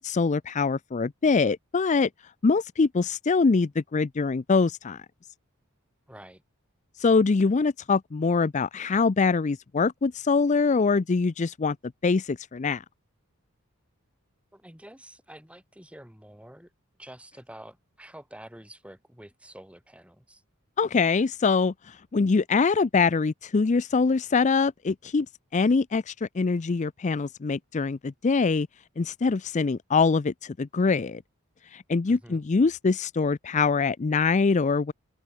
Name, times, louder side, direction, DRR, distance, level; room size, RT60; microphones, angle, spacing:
voice 1, 0.0-2.1 2.4-5.1 7.0-11.8 12.0-12.8 20.8-25.3 25.5-28.7 29.0-31.2 31.6-34.9, left 4 dB, 35° left, 0.4 m, -24 dB
voice 2, 6.1-6.4 14.5-16.7 17.0-20.4 32.1-32.5, right 1 dB, 5° right, 4.2 m, -48 dB
head